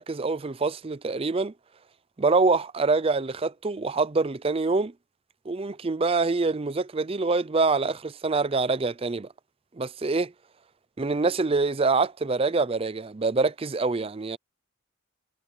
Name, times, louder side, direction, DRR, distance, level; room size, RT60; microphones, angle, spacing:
voice 1, 0.0-1.5 2.2-4.9 5.5-9.3 9.8-10.3 11.0-14.4, right 3 dB, 25° right, 0.4 m, -25 dB
head